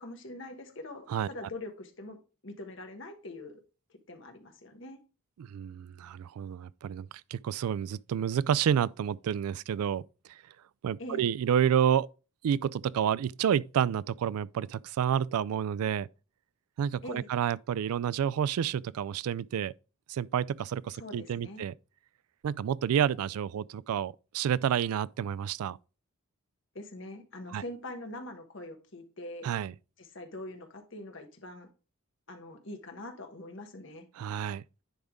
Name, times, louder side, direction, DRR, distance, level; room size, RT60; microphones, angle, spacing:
voice 1, 0.0-3.6 4.1-5.0 11.0-11.3 17.0-17.3 21.0-21.6 26.7-29.5 30.0-31.7 32.3-34.1, left 2 dB, 60° left, 1.3 m, -43 dB
voice 2, 5.4-10.0 10.3-10.4 10.8-12.1 12.4-16.1 16.8-19.7 20.1-21.7 22.4-25.8 27.5-27.6 29.4-29.7 34.2-34.6, right 8 dB, 90° right, 0.3 m, -29 dB
10.0 x 3.5 x 3.6 m
head